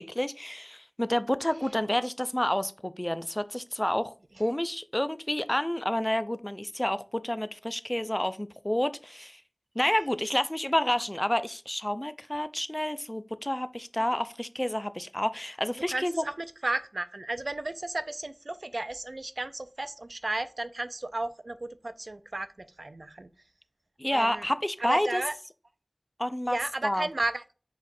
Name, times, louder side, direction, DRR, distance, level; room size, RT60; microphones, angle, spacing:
voice 1, 0.0-4.1 4.4-9.4 9.8-16.2 24.0-25.2 26.2-27.1, left 1 dB, 20° left, 0.4 m, -29 dB
voice 2, 15.9-23.3 24.1-24.5 24.8-25.3 26.5-27.5, right 2 dB, 75° right, 0.4 m, -34 dB
4.9 x 4.1 x 2.6 m
wide cardioid pair, 45°, 0 cm